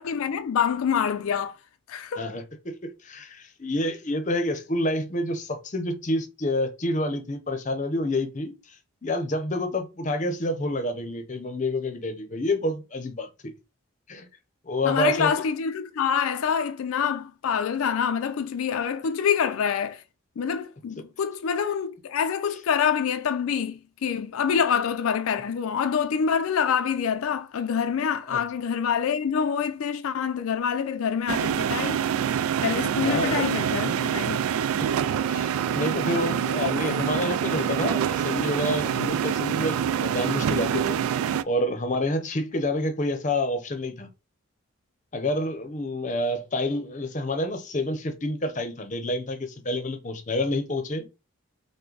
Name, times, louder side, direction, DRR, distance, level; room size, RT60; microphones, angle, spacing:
voice 1, 0.0-1.6 1.9-2.3 14.8-20.0 20.4-32.0 32.6-34.5, left 7 dB, 80° left, 0.4 m, -26 dB
voice 2, 2.2-8.5 9.0-13.5 14.1-14.3 14.7-15.3 28.3-28.4 33.0-33.5 35.3-41.0 41.4-44.1 45.1-51.1, left 1 dB, 35° left, 0.6 m, -28 dB
sound 1, 31.3-41.4, right 8 dB, 85° right, 0.3 m, -26 dB
5.7 x 2.1 x 3.8 m
head